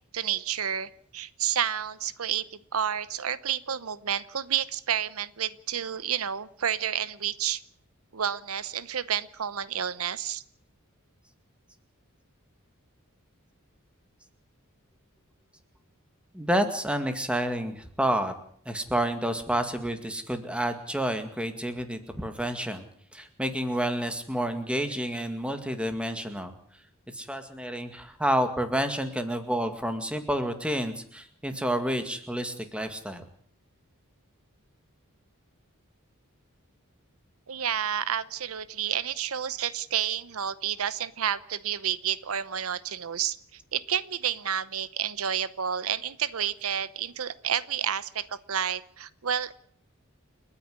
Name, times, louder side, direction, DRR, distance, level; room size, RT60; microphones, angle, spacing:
voice 1, 0.1-2.4 2.7-7.6 8.1-10.4 37.5-43.4 43.7-49.5, right 9 dB, 75° right, 16 dB, 0.8 m, -30 dB
voice 2, 16.3-18.3 18.7-22.8 23.1-26.5 27.1-33.2, right 1 dB, 5° right, 8 dB, 2.1 m, -29 dB
29.5 x 9.9 x 9.7 m, 0.62 s
head